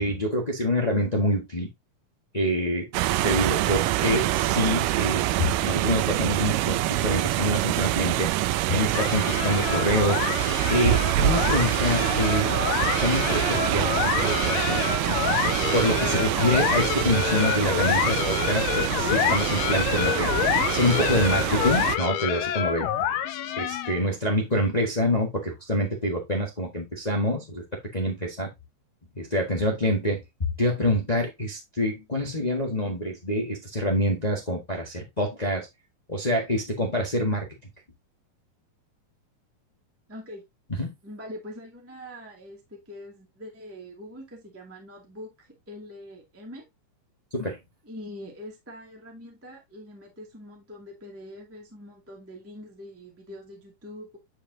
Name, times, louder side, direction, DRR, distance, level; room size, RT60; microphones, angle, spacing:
voice 1, 0.0-1.7 2.3-2.9 3.2-8.3 8.7-10.2 10.7-12.5 13.0-15.1 15.7-20.3 20.7-22.9 23.5-27.6 27.9-28.5 29.2-30.2 30.6-35.7 36.1-37.5 40.8-40.9 47.3-47.6, equal, 50° left, 0.4 m, -26 dB
sound 1, 2.9-22.0, right 14 dB, 85° right, 2.2 m, -25 dB
sound 2, 9.0-24.1, left 10 dB, 85° left, 2.5 m, -27 dB
voice 2, 40.1-40.4 41.0-46.6 47.8-54.2, left 1 dB, 5° right, 1.5 m, -43 dB
10.0 x 4.9 x 2.7 m
omnidirectional pair, 3.8 m